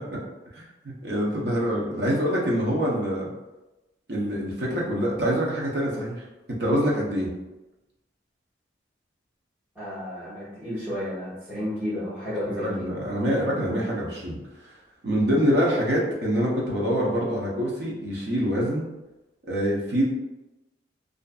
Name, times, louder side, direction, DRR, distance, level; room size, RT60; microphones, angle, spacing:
voice 1, 0.5-3.3 4.1-6.2 6.6-7.3 12.4-14.4 15.0-18.8 19.4-20.0, equal, 60° right, -3 dB, 0.6 m, -25 dB
voice 2, 9.7-12.9, left 1 dB, 10° right, -12 dB, 0.9 m, -32 dB
2.5 x 2.4 x 2.3 m, 1.0 s
head